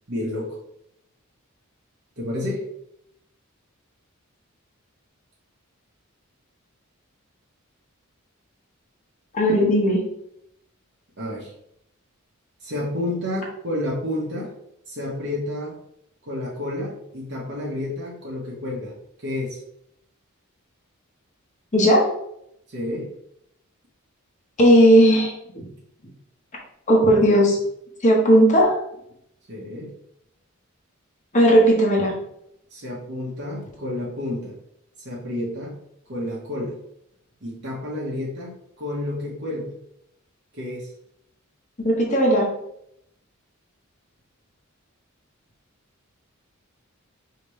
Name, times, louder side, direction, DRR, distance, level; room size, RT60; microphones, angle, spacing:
voice 1, 0.1-0.6 2.2-2.6 11.2-11.5 12.6-14.5 14.9-15.8 16.2-19.6 22.7-23.1 29.5-29.9 32.7-34.6 35.0-35.8 36.1-36.8 37.4-38.5 38.8-39.8 40.5-40.9, left 1 dB, 55° right, -5 dB, 1.1 m, -30 dB
voice 2, 9.3-10.0 21.7-22.1 24.6-25.7 26.9-27.6 28.0-28.8 31.3-32.1 41.8-42.5, equal, 35° left, -2 dB, 1.0 m, -16 dB
5.0 x 2.9 x 3.1 m, 0.75 s
head